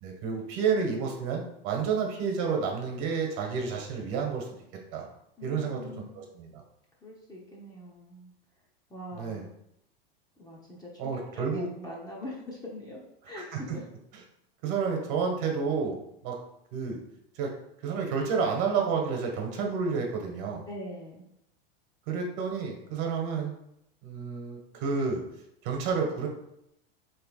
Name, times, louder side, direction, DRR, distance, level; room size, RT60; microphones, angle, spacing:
voice 1, 0.0-4.5 4.9-5.1 5.4-5.8 6.1-6.6 9.1-9.4 11.0-11.7 13.5-13.6 14.6-16.4 16.7-17.0 17.3-17.5 17.8-20.6 22.1-23.5 24.0-25.2 25.6-26.3, right 5 dB, 55° right, 1 dB, 1.4 m, -30 dB
voice 2, 5.4-6.2 7.0-8.3 8.9-9.5 10.4-13.9 20.7-21.2, left 1 dB, 10° left, -4 dB, 0.9 m, -43 dB
3.3 x 3.3 x 4.9 m, 0.78 s
supercardioid pair, 120°, 31 cm